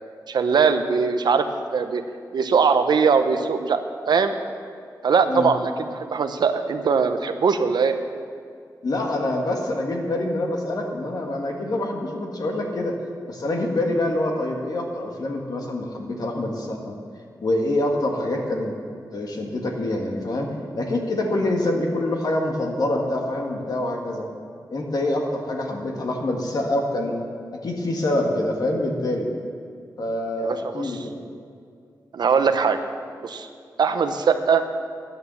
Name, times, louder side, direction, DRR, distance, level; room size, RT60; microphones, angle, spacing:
voice 1, 0.3-2.0 2.3-4.4 5.0-8.0 30.4-31.1 32.1-32.8 33.2-33.5 33.8-34.6, right 5 dB, 80° right, 8 dB, 0.8 m, -21 dB
voice 2, 8.8-13.0 13.3-16.9 17.4-18.8 19.1-24.3 24.7-27.2 27.5-29.3 30.0-31.2, left 1 dB, 65° left, 1 dB, 1.9 m, -25 dB
11.0 x 9.2 x 7.0 m, 2.2 s
wide cardioid pair, 105°, 7 cm